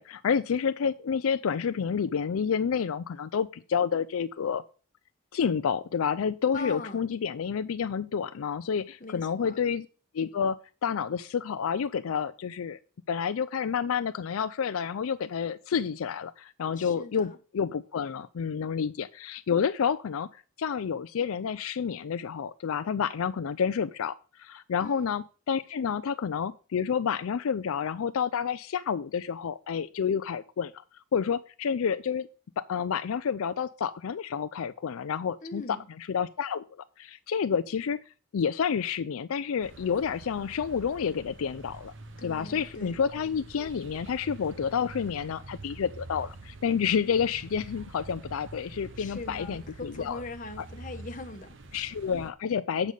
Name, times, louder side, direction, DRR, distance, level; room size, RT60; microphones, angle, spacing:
voice 1, 0.0-4.6 5.3-9.9 10.1-12.8 13.1-20.3 20.6-30.7 31.1-32.3 32.6-36.6 37.0-38.0 38.3-41.9 42.2-50.2 50.6-50.7 51.7-52.9, left 7 dB, 80° left, 0.4 m, -29 dB
voice 2, 6.5-7.0 9.0-9.6 16.8-17.4 24.8-25.2 35.4-35.9 42.2-43.0 49.0-51.6, left 2 dB, 35° left, 1.1 m, -41 dB
sound 1, 39.6-52.3, right 2 dB, 60° right, 0.9 m, -46 dB
8.3 x 5.4 x 6.4 m
head